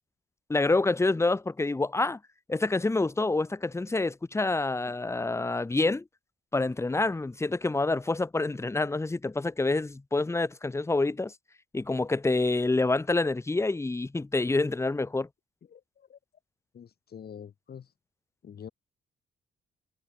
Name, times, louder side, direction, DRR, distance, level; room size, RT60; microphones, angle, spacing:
voice 1, 0.5-2.2 2.5-6.0 6.5-11.3 11.7-15.3, left 2 dB, 15° left, 1.0 m, -27 dB
voice 2, 15.7-16.2 16.7-17.9 18.4-18.7, left 8 dB, 50° left, 3.6 m, -46 dB
cardioid pair, 90°, 20 cm